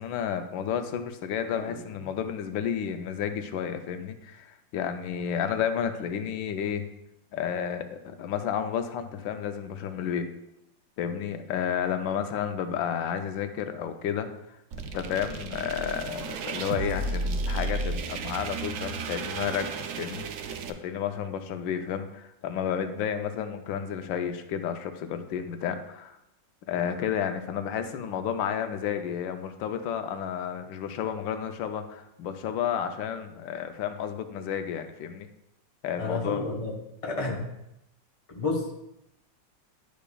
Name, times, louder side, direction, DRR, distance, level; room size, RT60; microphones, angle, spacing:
voice 1, 0.0-6.9 7.3-10.3 11.0-14.3 14.8-19.7 20.0-20.2 20.8-26.2 26.7-35.3 35.8-36.4, left 8 dB, 90° left, 8 dB, 1.3 m, -31 dB
sound 1, 14.7-20.7, right 3 dB, 90° right, 0.7 m, -33 dB
voice 2, 36.0-36.7 37.0-37.4 38.3-38.8, left 3 dB, 25° left, -1 dB, 0.8 m, -31 dB
11.0 x 5.1 x 2.3 m, 0.84 s
omnidirectional pair, 2.0 m